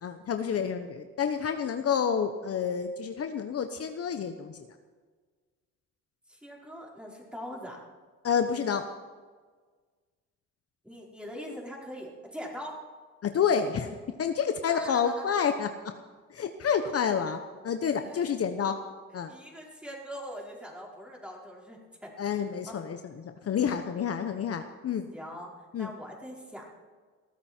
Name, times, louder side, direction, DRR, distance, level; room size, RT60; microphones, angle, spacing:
voice 1, 0.0-4.6 8.2-8.8 13.2-15.7 16.3-17.4 17.6-18.8 19.1-19.3 22.2-25.1 25.7-25.9, left 7 dB, 50° left, 7 dB, 1.1 m, -29 dB
voice 2, 6.3-7.8 10.8-12.8 14.7-15.3 18.0-18.3 19.3-22.1 22.7-22.8 25.1-26.7, equal, 5° right, -3 dB, 4.8 m, -42 dB
21.0 x 14.0 x 4.5 m, 1.5 s
cardioid pair, 90°, 30 cm